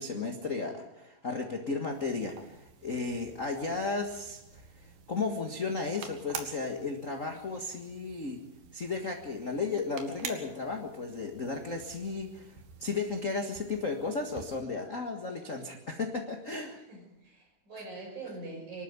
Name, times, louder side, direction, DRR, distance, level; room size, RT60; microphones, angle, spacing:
voice 1, 0.0-8.4 8.7-16.8, left 4 dB, 50° left, 3 dB, 0.9 m, -34 dB
sound 1, 1.9-14.6, right 6 dB, 85° right, 3.7 m, -48 dB
voice 2, 16.9-18.8, right 3 dB, 50° right, 0 dB, 7.3 m, -43 dB
24.0 x 13.0 x 9.6 m, 0.90 s
omnidirectional pair, 4.3 m